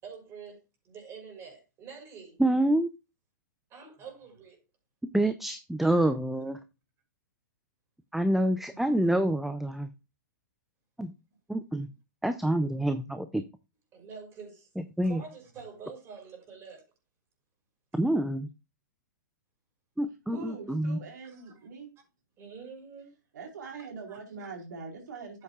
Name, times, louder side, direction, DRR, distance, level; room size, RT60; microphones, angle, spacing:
voice 1, 0.0-2.4 3.7-4.6 8.7-8.8 13.9-14.7 15.0-16.9 22.4-23.1 24.1-24.2, right 6 dB, 25° right, 5.8 m, -46 dB
voice 2, 2.4-2.9 5.1-6.6 8.1-9.9 11.0-11.1 11.5-11.9 12.2-13.4 15.0-15.2 17.9-18.5 20.0-21.0, right 1 dB, ahead, 0.5 m, -27 dB
voice 3, 20.3-21.9 23.3-25.4, right 4 dB, 75° right, 4.3 m, -42 dB
12.0 x 8.5 x 2.4 m
hypercardioid pair, 135°, 10 cm